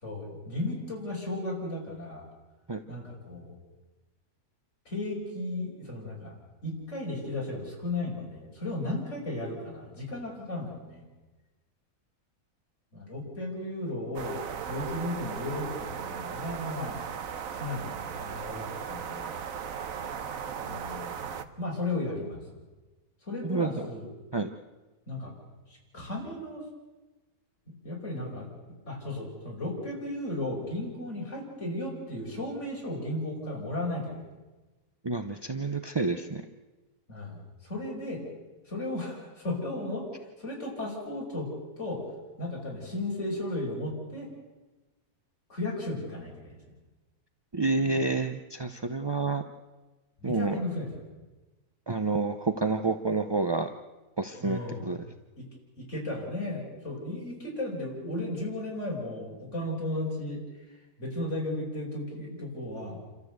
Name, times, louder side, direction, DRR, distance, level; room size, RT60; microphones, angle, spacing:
voice 1, 0.0-2.3 2.9-3.5 4.9-6.3 6.6-11.1 12.9-17.0 17.6-19.4 20.6-22.4 23.3-24.1 25.1-25.3 25.9-26.7 27.8-28.5 28.9-34.2 37.1-38.2 38.7-40.1 40.4-41.5 41.8-42.0 42.4-44.3 45.5-46.5 50.2-51.0 54.4-54.9 55.4-55.5 55.8-60.4 61.0-63.0, left 1 dB, 50° left, -3 dB, 5.7 m, -35 dB
sound 1, 14.1-21.4, right 7 dB, 60° right, 1.3 m, -37 dB
voice 2, 35.0-36.4 47.5-49.4 50.2-50.6 51.9-53.7 54.2-55.1, right 3 dB, 30° right, 7 dB, 0.4 m, -29 dB
28.5 x 13.5 x 8.0 m, 1.2 s
omnidirectional pair, 1.7 m